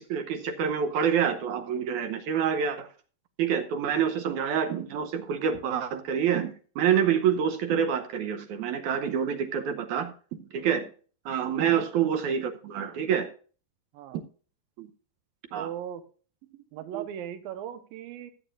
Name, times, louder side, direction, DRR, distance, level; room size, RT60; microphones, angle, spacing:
voice 1, 0.0-2.9 3.4-10.1 10.4-10.9 11.3-13.3 14.8-14.9 15.5-15.7 16.9-17.1, right 8 dB, 70° right, 7 dB, 2.0 m, -27 dB
voice 2, 15.6-16.0 16.5-18.3, right 10 dB, 90° right, 9 dB, 2.8 m, -38 dB
14.5 x 8.8 x 2.5 m, 0.39 s
omnidirectional pair, 4.1 m